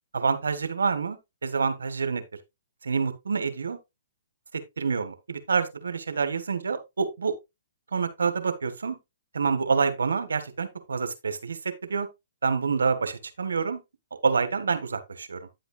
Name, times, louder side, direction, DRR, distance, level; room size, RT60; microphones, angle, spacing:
voice 1, 0.1-2.2 2.8-3.8 4.5-7.3 7.9-9.0 9.3-12.1 12.4-13.8 14.2-15.5, right 5 dB, 80° right, 1.6 m, -27 dB
9.8 x 8.1 x 2.3 m
hypercardioid pair, 135°, 0 cm